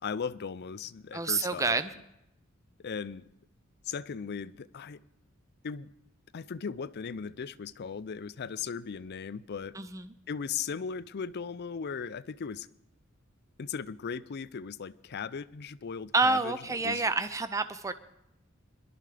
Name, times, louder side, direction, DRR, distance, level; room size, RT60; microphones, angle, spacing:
voice 1, 0.0-1.8 2.8-3.3 3.9-5.0 5.6-5.9 6.3-9.8 10.3-12.7 13.6-16.6 16.8-17.1, left 6 dB, 50° left, 0.5 m, -37 dB
voice 2, 1.1-1.9 9.7-10.1 16.1-17.9, right 3 dB, 15° right, 0.5 m, -28 dB
21.5 x 12.0 x 3.4 m
head